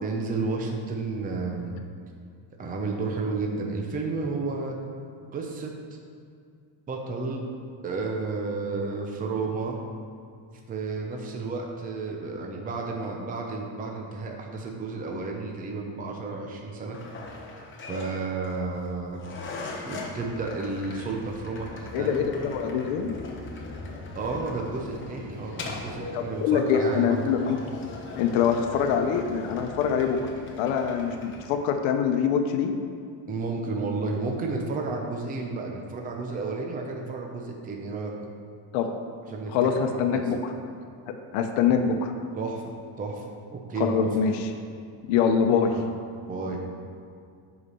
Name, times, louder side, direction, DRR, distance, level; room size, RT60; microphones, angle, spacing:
voice 1, 0.0-1.7 2.6-4.8 5.3-5.7 6.9-7.5 7.8-9.8 10.7-17.0 17.9-19.2 19.8-22.2 24.1-27.4 33.3-38.1 39.3-39.6 40.1-40.2 42.4-43.2 43.5-44.1 45.7-45.9 46.3-46.6, right 3 dB, 20° right, 1 dB, 0.7 m, -32 dB
sound 1, 16.9-31.5, left 3 dB, 25° left, 1.0 m, -40 dB
voice 2, 21.9-23.1 26.1-27.4 28.2-30.2 30.6-32.7 38.7-38.9 39.5-40.4 41.3-42.1 43.8-44.5 45.1-45.7, left 7 dB, 85° left, 5 dB, 0.9 m, -24 dB
8.2 x 5.0 x 5.6 m, 2.3 s
cardioid pair, 155°, 47 cm